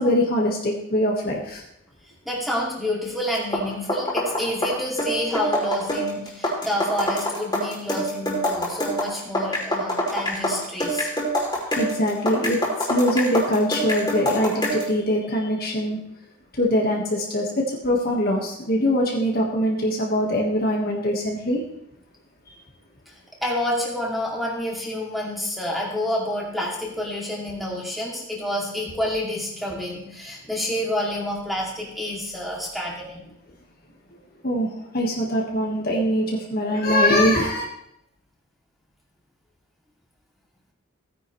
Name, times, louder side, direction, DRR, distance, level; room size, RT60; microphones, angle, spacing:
voice 1, 0.0-1.6 11.7-16.0 16.5-21.6 34.4-37.7, equal, 45° left, -1 dB, 1.6 m, -23 dB
voice 2, 2.3-11.1 23.4-33.2, left 1 dB, ahead, -4 dB, 2.5 m, -28 dB
sound 1, 3.3-14.9, equal, 20° left, 3.0 m, -25 dB
16.0 x 9.7 x 3.2 m, 0.80 s
head